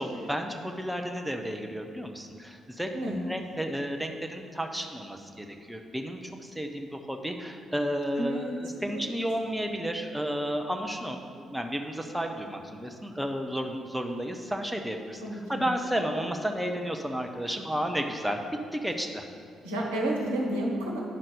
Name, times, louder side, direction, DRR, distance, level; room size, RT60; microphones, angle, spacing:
voice 1, 0.0-18.4 18.7-19.2, equal, 5° right, 3 dB, 0.8 m, -32 dB
voice 2, 8.2-9.1 15.2-15.7 19.6-21.0, right 1 dB, 75° right, -2 dB, 1.2 m, -31 dB
9.2 x 5.8 x 5.1 m, 2.3 s
figure-of-eight pair, 40°, 0 cm